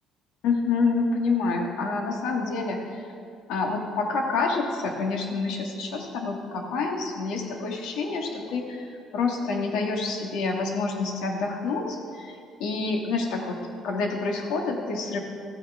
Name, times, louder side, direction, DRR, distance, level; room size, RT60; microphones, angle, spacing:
voice 1, 0.4-3.1 3.5-13.6 13.8-15.2, left 4 dB, 85° left, 1 dB, 1.6 m, -28 dB
14.5 x 9.3 x 3.6 m, 2.4 s
cardioid pair, 170°, 0 cm